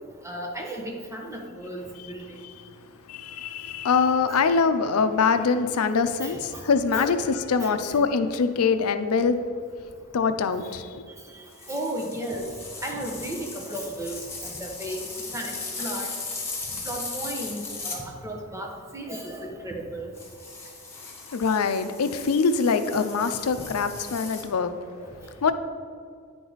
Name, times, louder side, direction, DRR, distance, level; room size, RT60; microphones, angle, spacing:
voice 1, 0.2-2.4 4.0-4.5 6.2-7.1 7.6-7.8 11.1-12.4 12.8-16.1 16.8-20.1 25.0-25.5, right 1 dB, 15° right, 0 dB, 1.0 m, -35 dB
voice 2, 3.1-9.4 10.1-11.0 21.3-24.7 25.4-25.5, left 5 dB, 90° left, 10 dB, 0.5 m, -24 dB
sound 1, 11.5-18.0 20.1-24.4, left 3 dB, 10° left, 1.3 m, -37 dB
9.9 x 4.7 x 4.0 m, 2.2 s
head